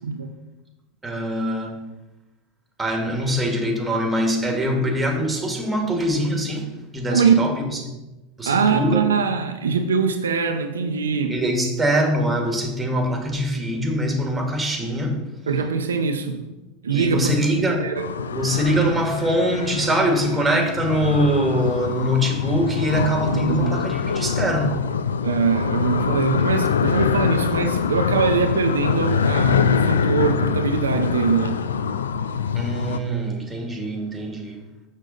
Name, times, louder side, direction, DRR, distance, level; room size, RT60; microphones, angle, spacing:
voice 1, 1.0-1.8 2.8-6.7 6.9-7.8 8.4-9.1 11.3-15.2 16.9-17.9 18.3-24.8 32.5-34.6, equal, 15° right, 1.8 m, -23 dB
voice 2, 7.1-7.5 8.5-11.4 15.5-16.5 16.8-17.4 17.8-18.1 23.3-23.8 25.2-31.6, right 5 dB, 85° right, 0.6 m, -22 dB
sound 1, 18.0-33.0, left 6 dB, 80° left, 0.4 m, -24 dB
6.6 x 6.3 x 3.9 m
hypercardioid pair, 85°, 0 cm